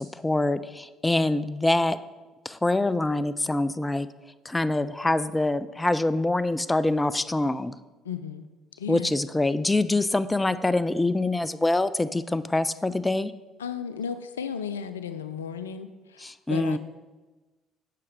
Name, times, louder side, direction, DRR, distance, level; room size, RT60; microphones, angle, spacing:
voice 1, 0.0-2.0 2.4-4.1 4.4-7.7 8.9-13.3 16.2-16.8, left 2 dB, 15° left, 15 dB, 0.4 m, -25 dB
voice 2, 8.0-8.4 8.8-9.1 13.6-16.8, left 7 dB, 90° left, 12 dB, 0.4 m, -34 dB
8.5 x 5.9 x 4.9 m, 1.2 s
hypercardioid pair, 55°, 0 cm